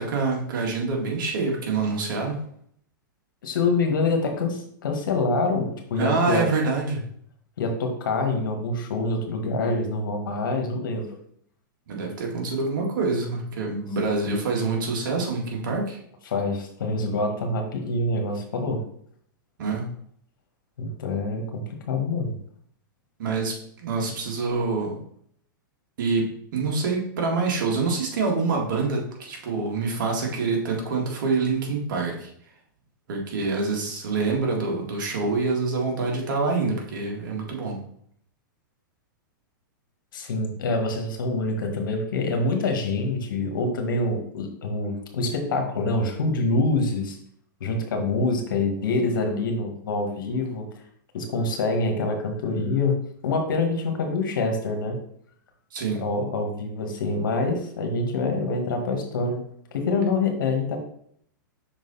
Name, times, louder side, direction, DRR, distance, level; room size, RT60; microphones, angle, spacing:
voice 1, 0.0-2.4 6.0-7.1 11.9-16.0 19.6-19.9 23.2-25.0 26.0-32.3 33.1-37.8 55.7-56.0, right 4 dB, 70° right, 0 dB, 1.9 m, -26 dB
voice 2, 3.4-6.5 7.6-11.2 16.3-18.8 20.8-22.4 40.1-47.2 47.6-50.7 51.1-53.0 53.2-55.0 55.9-59.4 59.7-60.8, left 3 dB, 75° left, 4 dB, 1.5 m, -26 dB
6.0 x 3.9 x 4.1 m, 0.65 s
hypercardioid pair, 120°, 11 cm